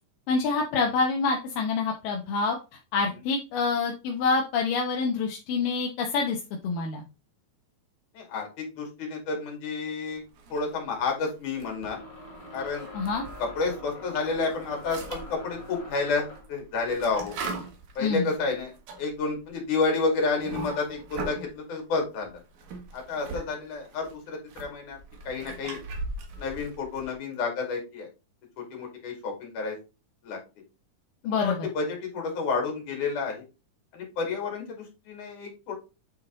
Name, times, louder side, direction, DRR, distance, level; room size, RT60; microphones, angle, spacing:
voice 1, 0.3-2.6 2.9-7.0 12.9-13.2 18.0-18.3 31.2-31.7, left 4 dB, 85° left, 1 dB, 2.6 m, -26 dB
voice 2, 8.1-10.2 10.5-12.0 12.5-12.9 13.4-17.3 18.0-18.7 19.0-22.4 22.9-25.0 25.3-25.8 26.4-28.1 28.6-29.8 30.2-30.4 31.2-33.4 33.9-35.7, left 4 dB, 70° left, 1 dB, 3.8 m, -30 dB
sound 1, 10.3-11.0 11.5-13.8 14.1-21.5 22.2-23.5 23.7-27.1, right 3 dB, 65° right, 2.7 m, -40 dB
sound 2, 11.7-16.6, left 1 dB, 15° left, 1.0 m, -44 dB
9.1 x 4.1 x 3.9 m, 0.29 s
omnidirectional pair, 3.7 m